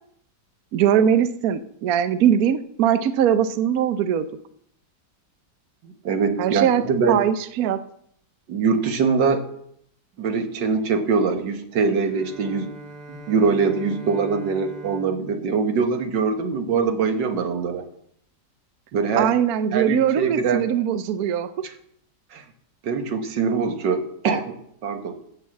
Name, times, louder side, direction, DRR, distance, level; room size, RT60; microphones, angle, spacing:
voice 1, 0.7-4.3 6.4-6.8 7.1-7.8 19.2-21.5, right 9 dB, 65° right, 12 dB, 1.1 m, -21 dB
voice 2, 5.8-7.2 8.5-9.4 10.2-12.7 13.1-17.9 18.9-19.3 19.7-20.6 22.3-22.4 22.8-24.6 24.8-25.2, right 5 dB, 90° right, 7 dB, 1.9 m, -23 dB
Bowed string instrument, 12.0-17.0, right 2 dB, 35° right, 1.7 m, -43 dB
14.0 x 5.6 x 7.6 m, 0.70 s
omnidirectional pair, 1.9 m